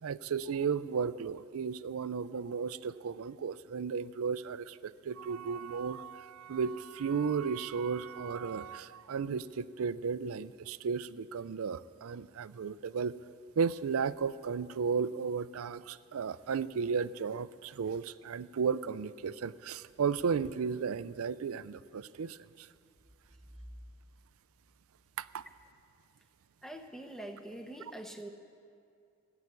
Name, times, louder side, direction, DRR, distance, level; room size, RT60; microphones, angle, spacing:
voice 1, 0.0-13.1 13.6-22.7 25.2-25.4, right 6 dB, 75° right, 16 dB, 0.4 m, -34 dB
voice 2, 26.6-28.3, right 1 dB, ahead, 4 dB, 0.8 m, -44 dB
16.0 x 7.9 x 9.8 m, 2.4 s
head